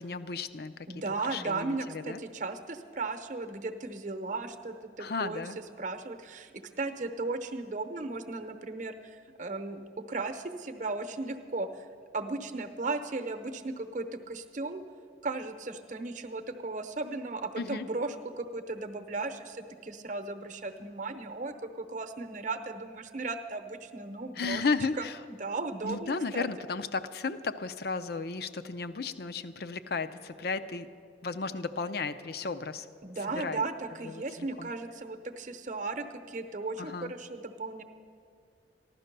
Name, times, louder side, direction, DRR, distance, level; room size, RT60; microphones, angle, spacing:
voice 1, 0.0-0.7 1.2-2.2 5.0-5.6 17.6-17.9 24.4-25.2 25.8-30.9 31.2-32.9 33.3-33.6 34.0-34.7 36.8-37.1, left 4 dB, 55° left, 11 dB, 0.6 m, -34 dB
voice 2, 0.9-5.4 5.8-11.9 12.1-14.8 15.2-24.6 25.0-26.5 33.0-37.8, right 3 dB, 45° right, 8 dB, 0.8 m, -36 dB
15.0 x 11.5 x 6.7 m, 2.3 s
head